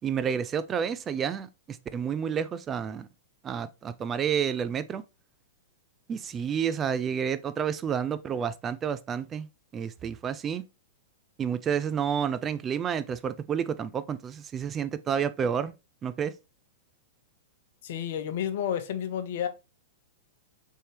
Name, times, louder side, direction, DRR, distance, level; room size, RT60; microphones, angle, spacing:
voice 1, 0.0-3.1 3.4-5.0 6.1-9.5 9.7-10.6 11.4-15.7 16.0-16.3, right 7 dB, 25° right, 0.3 m, -30 dB
voice 2, 17.8-19.5, left 9 dB, 60° left, 0.7 m, -31 dB
4.0 x 3.6 x 3.2 m
hypercardioid pair, 105°, 0 cm